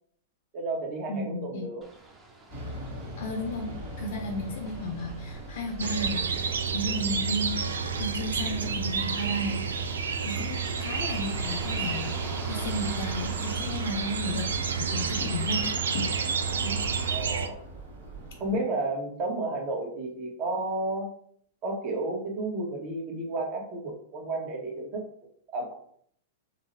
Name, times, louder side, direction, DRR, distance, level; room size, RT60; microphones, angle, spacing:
voice 1, 0.5-1.8 11.0-11.2 17.1-17.6 18.4-21.1 21.6-25.0 25.5-25.7, right 2 dB, 40° right, 1 dB, 0.9 m, -32 dB
voice 2, 1.1-1.7 3.2-6.3 6.7-7.6 8.0-9.7 10.2-15.6 15.9-16.1 16.6-16.8, left 1 dB, 65° left, 4 dB, 0.4 m, -33 dB
sound 1, 1.8-17.2, right 2 dB, 20° right, 0.6 m, -46 dB
sound 2, 2.5-18.6, right 1 dB, 70° right, 1.1 m, -42 dB
sound 3, 5.8-17.5, right 6 dB, 85° right, 0.3 m, -30 dB
3.7 x 2.0 x 2.6 m, 0.62 s
hypercardioid pair, 115°, 0 cm